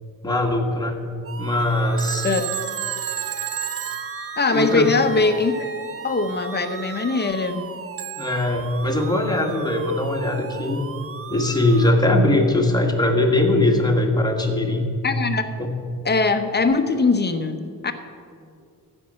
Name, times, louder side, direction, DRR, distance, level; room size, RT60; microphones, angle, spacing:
voice 1, 0.2-1.0 1.4-2.3 4.5-4.9 8.2-10.8 11.3-14.9 15.6-15.7, left 1 dB, 10° left, 1 dB, 1.6 m, -20 dB
sound 1, 1.2-11.9, right 7 dB, 40° right, 0.5 m, -37 dB
Wind instrument woodwind instrument, 1.5-7.3, equal, 5° right, 1.5 m, -43 dB
Telephone, 2.0-5.0 8.0-8.4, right 12 dB, 70° right, 0.8 m, -31 dB
voice 2, 4.4-5.5 6.0-7.7 15.0-15.5 16.0-17.9, left 3 dB, 25° left, 8 dB, 0.8 m, -21 dB
14.5 x 5.4 x 7.6 m, 2.3 s
cardioid pair, 105°, 37 cm